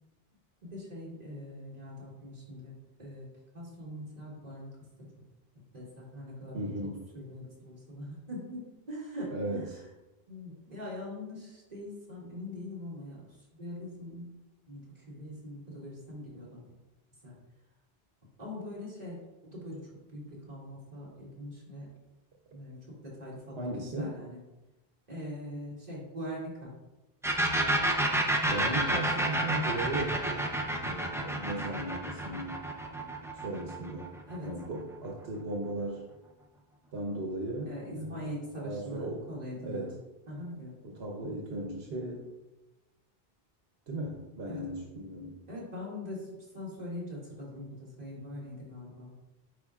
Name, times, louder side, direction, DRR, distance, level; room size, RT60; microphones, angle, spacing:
voice 1, 0.6-3.3 3.5-4.7 5.0-5.2 5.7-6.7 7.1-9.7 10.3-14.4 14.7-16.6 17.2-17.4 18.4-19.8 20.1-21.9 22.5-23.6 24.0-24.4 25.1-26.7 34.3-34.5 37.6-39.9 40.3-40.8 44.5-44.8 45.5-49.1, left 1 dB, 40° right, -6 dB, 2.4 m, -42 dB
voice 2, 6.5-7.0 9.3-9.8 23.6-24.2 28.5-30.5 30.8-32.6 33.3-34.1 34.4-36.0 36.9-38.3 38.6-39.2 39.6-39.9 40.8-42.2 43.9-45.4, right 1 dB, 85° right, -1 dB, 1.2 m, -36 dB
sound 1, 27.2-34.8, right 1 dB, 5° right, 0.5 m, -30 dB
9.8 x 4.7 x 2.4 m, 1.0 s
omnidirectional pair, 1.0 m